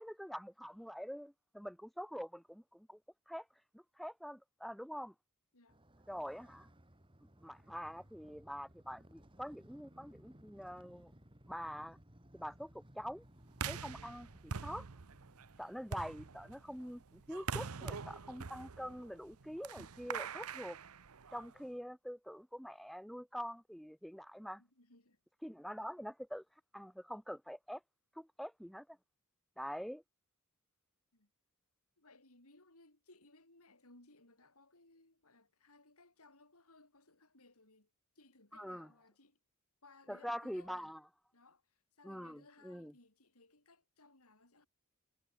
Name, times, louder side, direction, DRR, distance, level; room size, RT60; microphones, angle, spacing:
voice 1, 0.0-3.0 3.3-3.5 3.7-5.1 6.1-6.7 7.4-11.1 11.5-12.0 12.3-13.2 13.7-14.9 15.6-20.8 21.3-24.6 25.4-26.4 26.7-27.8 28.2-29.0 29.6-30.0 38.5-38.9 40.1-41.0 42.0-42.9, equal, ahead, 1.8 m, -45 dB
Motorcycle, 5.7-17.9, equal, 25° right, 3.5 m, -62 dB
sound 1, 13.5-21.6, right 5 dB, 80° right, 0.9 m, -45 dB
voice 2, 24.6-25.2 31.1-31.3 32.0-39.4 39.8-40.9 41.3-44.7, left 2 dB, 80° left, 6.8 m, -64 dB
head